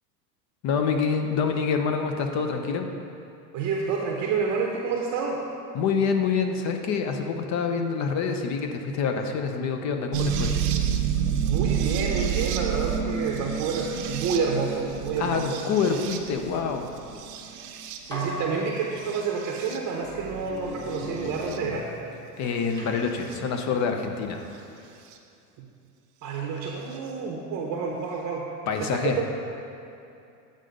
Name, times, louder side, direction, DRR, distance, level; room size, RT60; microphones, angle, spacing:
voice 1, 0.6-2.9 5.7-10.5 15.2-16.9 22.4-24.4 28.7-29.2, left 5 dB, 35° left, 5 dB, 0.6 m, -26 dB
voice 2, 3.5-5.4 11.4-15.6 18.0-21.9 25.6-25.7 26.2-28.5 28.8-29.2, right 5 dB, 35° right, -1 dB, 0.8 m, -29 dB
sound 1, 10.1-18.3 19.0-19.8 20.9-21.6 23.3-23.4 25.1-25.2, right 7 dB, 65° right, 0.8 m, -29 dB
Iron door opens, 17.5-17.7 18.1-19.4 20.0-22.4 22.8-24.6, left 1 dB, 10° left, 1.0 m, -39 dB
8.3 x 3.9 x 5.1 m, 2.6 s
hypercardioid pair, 105°, 50 cm